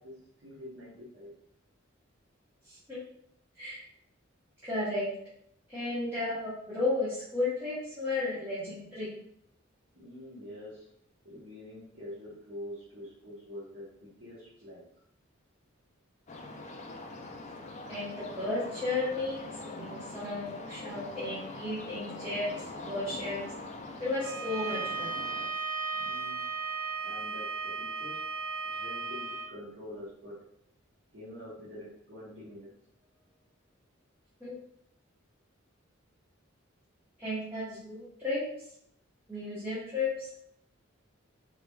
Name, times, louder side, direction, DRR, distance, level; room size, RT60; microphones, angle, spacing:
voice 1, 0.0-1.3 9.9-10.9 11.2-14.8 25.9-26.4 27.0-28.2 28.6-30.4 31.1-32.7, left 1 dB, 65° right, -8 dB, 1.1 m, -46 dB
voice 2, 4.6-5.1 5.7-9.1 17.9-19.4 19.7-22.5 22.8-23.4 24.0-25.1 34.4-34.6 37.2-38.4 39.3-40.3, left 2 dB, 10° right, -11 dB, 1.1 m, -33 dB
sound 1, 16.3-25.5, left 2 dB, 35° left, 0.4 m, -43 dB
Bowed string instrument, 24.2-29.5, right 4 dB, 40° right, 1.1 m, -35 dB
4.0 x 3.2 x 2.3 m, 0.70 s
head